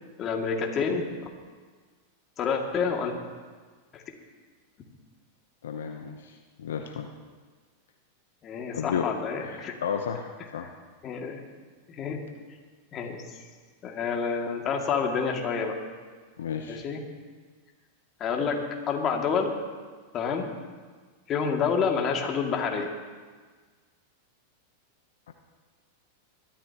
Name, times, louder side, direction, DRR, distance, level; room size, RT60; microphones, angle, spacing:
voice 1, 0.2-1.0 2.4-3.1 3.9-4.0 8.4-9.7 11.0-11.4 12.0-12.2 12.9-13.2 13.8-15.7 16.7-17.0 18.2-18.6 18.9-19.5 20.1-20.5 21.3-22.9, left 6 dB, 35° left, 1 dB, 2.4 m, -28 dB
voice 2, 5.6-7.1 8.7-9.1 9.4-10.7 16.4-16.8 25.3-25.4, left 7 dB, 80° left, 4 dB, 0.9 m, -33 dB
21.5 x 13.5 x 3.0 m, 1.5 s
hypercardioid pair, 105°, 0 cm